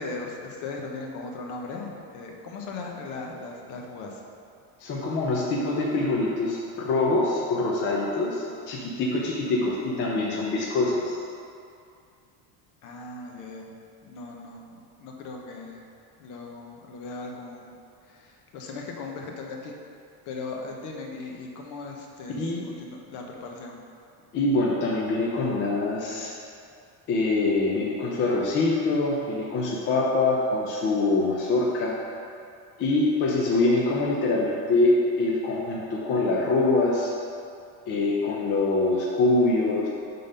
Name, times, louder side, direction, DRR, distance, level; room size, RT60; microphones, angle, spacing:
voice 1, 0.0-4.2 12.8-13.7 14.0-15.8 16.2-17.7 18.0-19.8 20.3-23.8, left 3 dB, 50° left, 1 dB, 0.8 m, -38 dB
voice 2, 4.8-11.2 22.4-22.6 24.3-26.3 27.1-32.0 32.8-37.1 37.9-39.9, left 2 dB, 30° left, -3 dB, 0.5 m, -24 dB
5.2 x 3.8 x 5.4 m, 2.5 s
cardioid pair, 165°, 40 cm